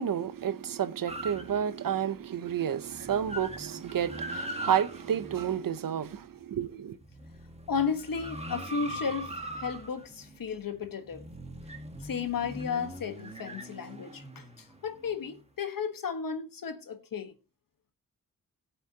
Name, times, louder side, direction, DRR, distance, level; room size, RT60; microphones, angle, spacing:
voice 1, 0.0-7.0, right 9 dB, 85° right, 0.9 m, -30 dB
sound 1, 1.1-2.1 2.5-2.6 2.8-6.4 6.9-15.4, right 1 dB, 20° right, 1.8 m, -41 dB
voice 2, 7.7-11.2 12.0-17.3, left 6 dB, 85° left, 1.5 m, -34 dB
18.0 x 8.1 x 2.9 m
cardioid pair, 60°, 33 cm